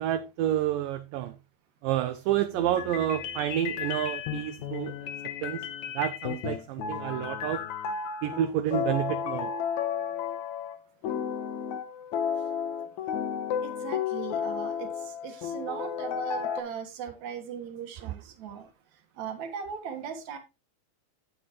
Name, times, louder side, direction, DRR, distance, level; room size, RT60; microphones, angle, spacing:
voice 1, 0.0-1.3 1.8-4.9 5.4-5.7 6.0-7.6 8.2-9.5, right 11 dB, 80° right, 2.2 m, -29 dB
sound 1, 2.5-10.8 11.0-16.6, left 8 dB, 65° left, 2.1 m, -33 dB
voice 2, 13.6-18.7 19.2-20.4, right 7 dB, 60° right, 2.6 m, -38 dB
9.9 x 8.4 x 3.0 m
omnidirectional pair, 4.2 m